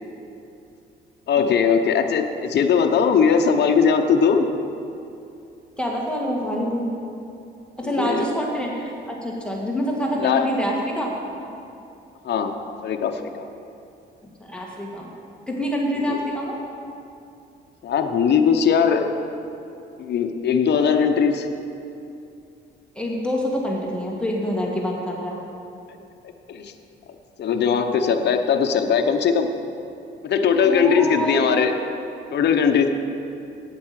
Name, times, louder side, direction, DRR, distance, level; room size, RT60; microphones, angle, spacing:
voice 1, 1.3-4.5 7.8-8.2 10.2-10.5 12.2-13.5 16.1-16.2 17.8-19.1 20.0-21.5 26.5-26.7 27.4-29.5 30.2-31.7 32.3-32.9, left 6 dB, 60° left, 4 dB, 0.9 m, -20 dB
voice 2, 5.8-6.9 7.8-11.1 14.5-15.1 15.5-16.6 22.9-25.4 30.6-31.5, equal, 5° left, -2 dB, 1.7 m, -26 dB
9.0 x 8.5 x 7.5 m, 2.6 s
cardioid pair, 90°, 20 cm